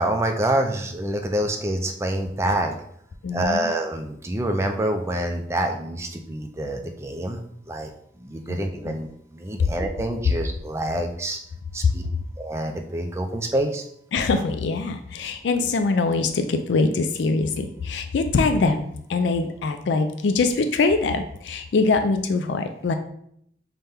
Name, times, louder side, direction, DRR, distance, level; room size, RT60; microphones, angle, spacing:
voice 1, 0.0-2.8 3.3-7.4 7.7-7.9 8.2-11.4 11.7-12.0 12.4-13.8, right 1 dB, 15° right, 3 dB, 0.3 m, -26 dB
voice 2, 3.2-3.7 8.5-8.6 8.8-8.9 9.6-9.7 14.1-22.9, left 3 dB, 80° left, 7 dB, 0.4 m, -23 dB
5.7 x 2.2 x 3.4 m, 0.70 s
head